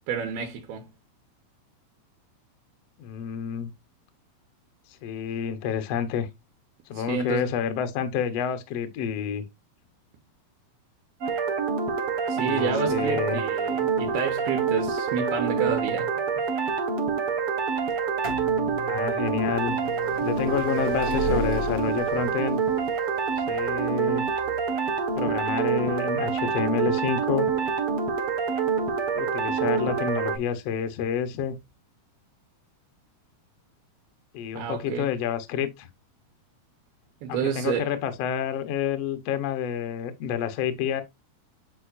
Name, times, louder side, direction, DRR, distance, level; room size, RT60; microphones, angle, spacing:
voice 1, 0.1-0.9 6.9-7.5 12.3-16.1 34.6-35.1 37.2-37.9, right 7 dB, 80° right, 3.0 m, -30 dB
voice 2, 3.0-3.7 5.0-6.3 6.9-9.4 12.3-13.4 18.8-19.8 20.2-22.6 23.5-24.2 25.1-27.5 29.1-31.6 34.3-35.9 37.3-41.0, left 8 dB, 80° left, 1.4 m, -29 dB
sound 1, 11.2-30.4, right 6 dB, 50° right, 1.7 m, -26 dB
sound 2, 17.9-29.5 30.4-30.5 31.4-31.5 31.7-31.8, left 4 dB, 15° right, 1.0 m, -38 dB
9.6 x 4.5 x 2.6 m
omnidirectional pair, 4.5 m